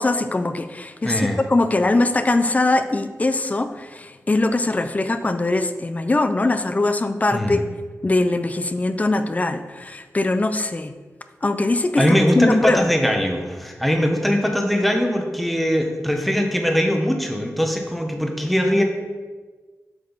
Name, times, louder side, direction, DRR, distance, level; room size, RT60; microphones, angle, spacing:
voice 1, 0.0-1.2 1.5-7.6 8.0-11.0 11.4-12.9, left 2 dB, 30° left, 9 dB, 0.5 m, -21 dB
voice 2, 1.0-1.4 7.3-7.6 12.0-18.8, equal, ahead, 2 dB, 1.0 m, -21 dB
7.9 x 5.3 x 4.0 m, 1.4 s
wide cardioid pair, 95°, 5 cm